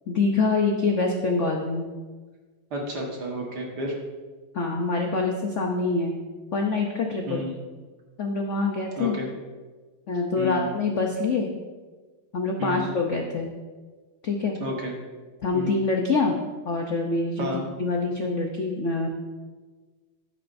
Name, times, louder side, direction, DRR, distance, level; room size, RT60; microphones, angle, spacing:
voice 1, 0.1-1.9 4.5-6.2 6.5-7.4 8.2-9.2 10.1-11.5 12.3-13.5 14.2-14.6 15.4-16.3 16.6-17.5 17.8-19.1, left 3 dB, 85° left, 1 dB, 0.6 m, -25 dB
voice 2, 2.7-4.0 7.3-7.6 9.0-9.3 10.4-10.7 12.6-12.9 14.6-14.9 15.5-15.8 17.4-17.6, equal, 50° right, -1 dB, 2.0 m, -31 dB
12.0 x 9.9 x 2.6 m, 1.3 s
omnidirectional pair, 2.4 m